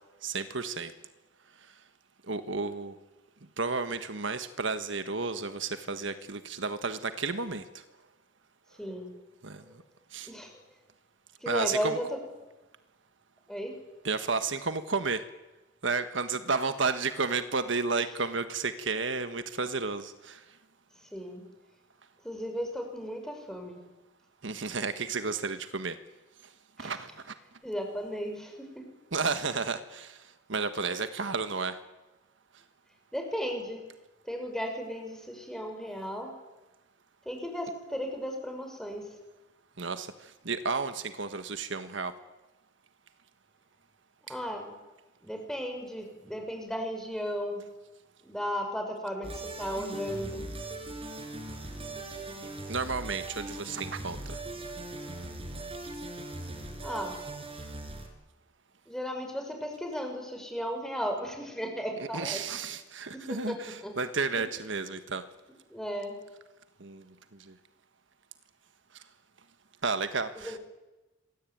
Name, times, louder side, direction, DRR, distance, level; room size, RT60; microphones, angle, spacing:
voice 1, 0.2-0.9 2.3-2.9 3.6-7.8 9.4-9.6 10.1-10.3 11.4-12.0 14.0-15.2 15.8-20.4 24.4-26.0 26.8-27.3 29.1-31.8 39.8-42.2 44.3-44.4 52.7-54.4 62.0-65.2 66.8-67.0 67.4-67.5 69.8-70.6, right 4 dB, 65° right, 10 dB, 1.5 m, -32 dB
voice 2, 11.4-12.2 13.5-13.7 21.1-21.4 22.2-23.8 26.8-26.9 27.6-28.8 33.1-33.8 34.3-36.3 37.3-39.1 44.3-44.7 45.2-47.6 48.2-50.5 56.8-57.2 58.9-62.4 63.1-63.9 65.7-66.1 70.4-70.6, equal, 5° left, 3 dB, 6.1 m, -35 dB
sound 1, 49.2-58.1, right 2 dB, 30° right, 5.1 m, -40 dB
27.0 x 21.5 x 9.4 m, 1.1 s
head